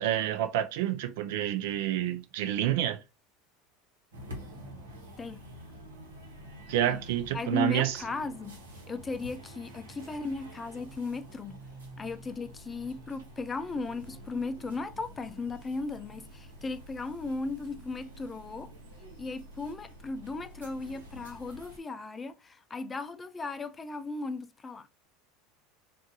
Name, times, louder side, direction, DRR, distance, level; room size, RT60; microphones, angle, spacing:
voice 1, 0.0-3.0 6.7-8.0, right 11 dB, 70° right, 0.5 m, -28 dB
sound 1, 4.1-21.8, equal, 85° right, 1.0 m, -48 dB
voice 2, 7.3-8.6 8.9-11.6 12.0-18.7 19.2-24.9, left 3 dB, 20° left, 0.4 m, -36 dB
2.6 x 2.4 x 3.7 m
hypercardioid pair, 85°, 0 cm